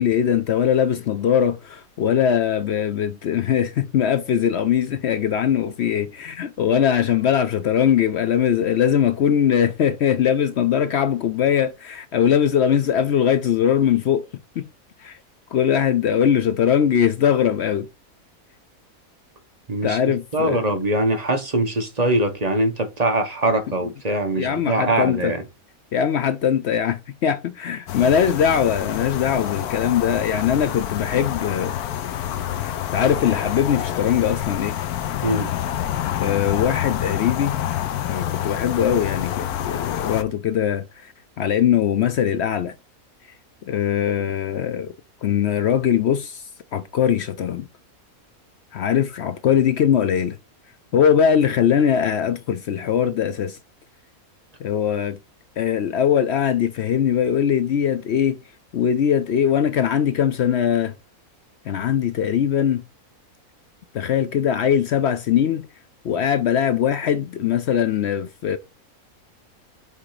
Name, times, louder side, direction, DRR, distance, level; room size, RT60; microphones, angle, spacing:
voice 1, 0.0-14.2 14.6-14.7 15.0-15.2 15.5-17.9 19.8-20.6 24.4-25.3 25.9-31.8 32.6-34.8 36.2-37.5 38.1-42.7 43.7-44.9 45.2-46.4 46.7-47.7 48.7-50.4 50.9-53.6 54.6-55.2 55.6-58.4 58.7-60.9 61.7-62.8 63.9-65.7 66.0-68.6, left 8 dB, 65° left, 0.7 m, -21 dB
voice 2, 19.7-25.4 35.2-35.5, right 1 dB, 30° right, 1.0 m, -22 dB
sound 1, 27.9-40.2, left 11 dB, 80° left, 1.2 m, -27 dB
6.4 x 3.6 x 4.9 m
omnidirectional pair, 1.6 m